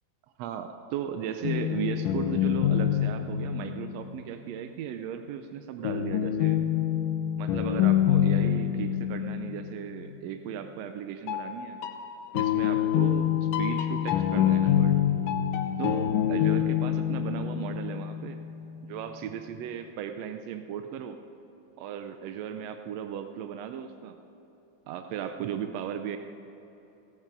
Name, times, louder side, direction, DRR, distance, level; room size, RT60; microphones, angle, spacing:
voice 1, 0.4-6.6 7.4-11.8 12.3-15.0 15.8-18.4 18.8-21.2 21.8-24.2 24.9-26.2, right 9 dB, 80° right, 7 dB, 1.5 m, -36 dB
sound 1, 1.4-4.6 5.8-10.5 11.3-19.0, left 10 dB, 90° left, 2.5 m, -26 dB
16.5 x 13.0 x 5.2 m, 3.0 s
omnidirectional pair, 3.6 m